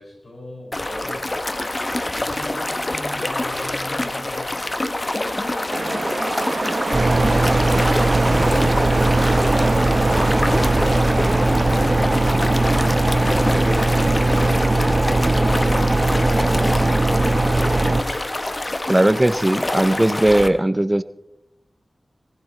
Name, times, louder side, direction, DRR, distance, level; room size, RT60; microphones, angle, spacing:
voice 1, 0.0-8.8, left 1 dB, 65° left, -2 dB, 5.9 m, -39 dB
sound 1, 0.7-20.5, left 1 dB, 30° left, 0.8 m, -26 dB
Waves on beach natural sound., 5.7-14.7, right 3 dB, 65° right, 1.0 m, -27 dB
sound 2, 6.9-18.0, right 2 dB, 35° right, 1.2 m, -19 dB
voice 2, 18.9-21.0, right 1 dB, 20° right, 13 dB, 0.5 m, -18 dB
19.0 x 15.0 x 3.2 m, 0.89 s
wide cardioid pair, 75°, 0 cm